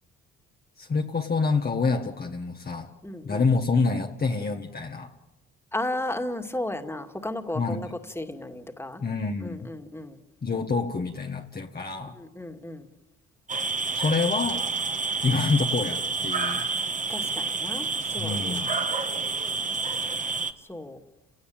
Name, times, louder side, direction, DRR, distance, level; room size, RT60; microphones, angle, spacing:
voice 1, 0.8-2.9 3.2-5.1 7.5-8.0 9.0-9.7 10.4-12.2 13.9-14.7 15.2-16.6 18.2-18.7, left 4 dB, 30° left, 2 dB, 1.5 m, -27 dB
voice 2, 3.0-3.4 5.7-9.0 9.4-10.2 12.2-12.9 17.1-18.7 20.7-21.0, left 1 dB, 10° left, 5 dB, 2.3 m, -34 dB
sound 1, 13.5-20.5, right 4 dB, 25° right, 1.6 m, -29 dB
30.0 x 17.5 x 9.0 m, 1.0 s
cardioid pair, 90°, 30 cm